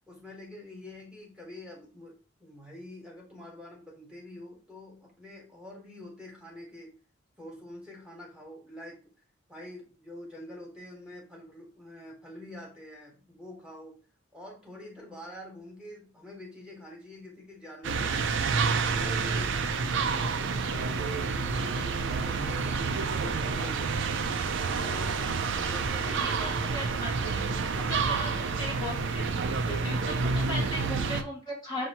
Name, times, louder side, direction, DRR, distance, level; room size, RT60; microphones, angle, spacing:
voice 1, 0.1-6.9 7.4-9.0 9.5-14.0 14.3-22.8 23.1-24.0 24.8-26.6, left 1 dB, 5° right, -1 dB, 1.1 m, -46 dB
sound 1, 17.8-31.2, right 4 dB, 60° right, 0.4 m, -29 dB
voice 2, 26.0-27.4 27.9-31.9, left 1 dB, 20° left, -4 dB, 0.9 m, -37 dB
5.7 x 2.7 x 2.8 m, 0.35 s
head